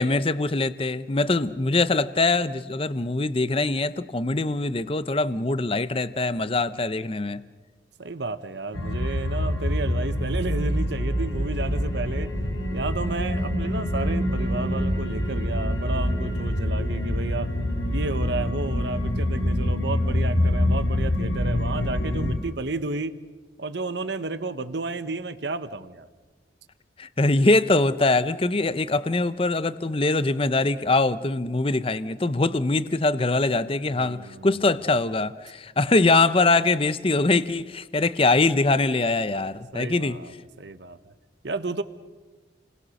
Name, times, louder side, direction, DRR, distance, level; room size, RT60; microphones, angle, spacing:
voice 1, 0.0-7.4 27.0-40.2, left 2 dB, 30° left, 14 dB, 0.7 m, -23 dB
voice 2, 8.0-12.3 12.7-17.5 17.9-23.1 23.6-26.1 33.9-34.5 39.7-41.0 41.4-41.8, right 3 dB, 65° right, 12 dB, 1.0 m, -32 dB
sound 1, 8.7-22.4, left 1 dB, 85° left, 5.6 m, -25 dB
29.5 x 21.5 x 6.5 m, 1.2 s
head